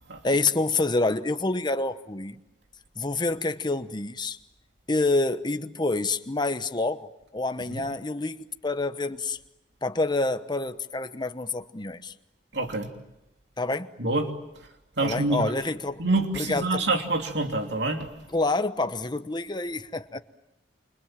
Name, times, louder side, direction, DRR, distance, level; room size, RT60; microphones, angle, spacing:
voice 1, 0.2-2.4 3.0-4.4 4.9-8.4 8.6-9.4 9.8-12.1 13.6-13.9 15.0-16.0 16.4-16.8 18.3-20.2, left 2 dB, 25° left, 1.0 m, -27 dB
voice 2, 12.5-12.9 14.0-14.3 15.0-15.5 16.0-18.1, right 2 dB, 70° right, 3.0 m, -26 dB
29.0 x 26.0 x 7.5 m
head